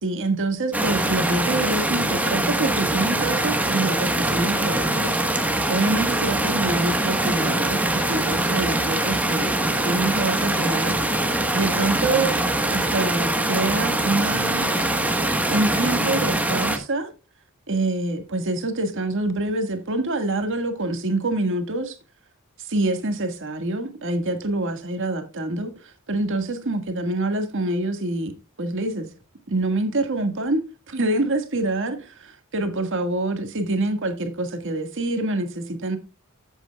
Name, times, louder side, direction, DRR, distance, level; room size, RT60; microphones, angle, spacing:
voice 1, 0.0-5.1 5.7-11.2 11.5-12.3 12.7-14.7 15.5-17.1 17.7-22.0 22.6-28.3 28.6-29.1 29.5-36.0, right 2 dB, 60° right, 1.7 m, -26 dB
sound 1, 0.7-16.8, right 1 dB, 5° right, 1.3 m, -23 dB
13.5 x 8.1 x 2.3 m
head